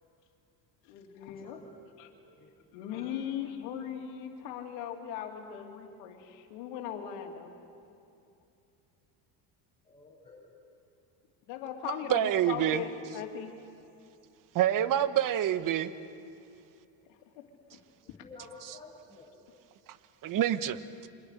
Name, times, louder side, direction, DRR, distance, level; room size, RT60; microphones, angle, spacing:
voice 1, 0.8-1.6 2.0-2.1 2.7-7.5 11.5-13.5 17.1-17.5, left 9 dB, 80° left, 3.0 m, -39 dB
voice 2, 2.0-3.1 9.8-10.5 15.5-15.9 18.0-19.4, left 3 dB, 15° left, 7.8 m, -52 dB
voice 3, 11.9-12.8 14.5-15.9 20.2-20.8, right 11 dB, 45° right, 1.2 m, -27 dB
28.5 x 24.5 x 6.6 m
supercardioid pair, 115°, 43 cm